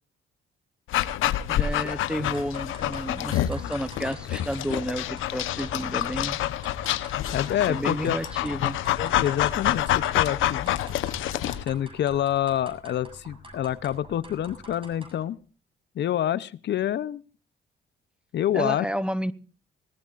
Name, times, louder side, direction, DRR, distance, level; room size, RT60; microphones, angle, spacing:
Dog, 0.9-11.6, left 12 dB, 85° left, 1.0 m, -27 dB
voice 1, 1.5-6.4 7.7-8.8 18.5-19.3, equal, 5° right, 16 dB, 0.9 m, -31 dB
sound 1, 2.1-15.3, right 1 dB, 25° right, 7.0 m, -46 dB
voice 2, 7.3-8.2 9.0-10.8 11.6-15.4 16.0-17.2 18.3-18.9, left 11 dB, 60° left, 18 dB, 0.7 m, -27 dB
20.5 x 18.5 x 2.5 m, 0.35 s
cardioid pair, 90°, 20 cm